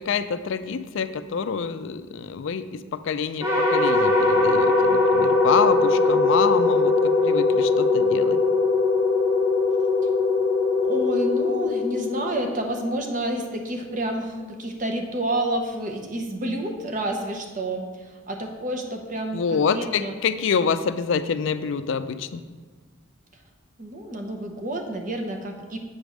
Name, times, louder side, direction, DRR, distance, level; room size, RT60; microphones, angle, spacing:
voice 1, 0.0-2.7 2.9-8.4 19.3-22.4, left 6 dB, 65° left, 12 dB, 0.3 m, -26 dB
sound 1, 3.4-12.7, left 3 dB, 15° right, 1.0 m, -21 dB
voice 2, 10.9-20.1 23.8-25.8, right 1 dB, 40° right, 3 dB, 0.7 m, -29 dB
7.9 x 3.4 x 6.2 m, 1.4 s
head